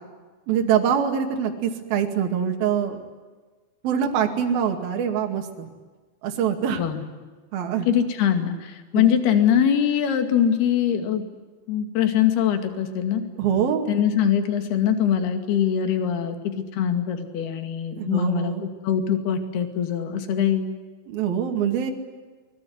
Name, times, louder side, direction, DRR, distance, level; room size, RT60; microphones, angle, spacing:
voice 1, 0.5-3.0 3.8-5.7 6.2-6.8 7.5-7.9 8.9-9.1 13.4-13.9 17.9-18.6 21.1-21.9, right 8 dB, 55° right, 2 dB, 3.6 m, -24 dB
voice 2, 6.7-7.0 7.9-11.2 11.7-13.2 13.9-16.4 16.7-18.5 18.8-20.7, left 9 dB, 55° left, 6 dB, 4.0 m, -22 dB
24.0 x 21.5 x 9.6 m, 1.4 s
omnidirectional pair, 5.9 m